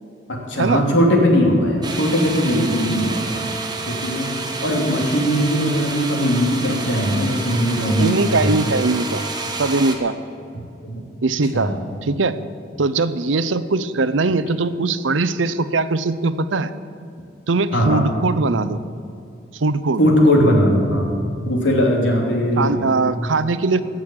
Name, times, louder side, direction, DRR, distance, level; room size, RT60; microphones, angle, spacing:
voice 1, 0.3-3.5 3.9-4.3 4.6-8.5 10.8-11.0 11.5-11.8 17.7-18.1 20.0-21.1 21.4-22.9, equal, 80° left, 0 dB, 2.9 m, -19 dB
sound 1, 1.8-10.0, right 3 dB, 20° right, 1.2 m, -29 dB
voice 2, 8.0-9.2 9.6-10.1 11.2-11.8 12.0-12.4 12.8-16.7 17.5-18.8 19.5-20.0 22.6-23.8, right 3 dB, 85° right, 13 dB, 0.7 m, -20 dB
16.0 x 6.3 x 9.7 m, 2.5 s
head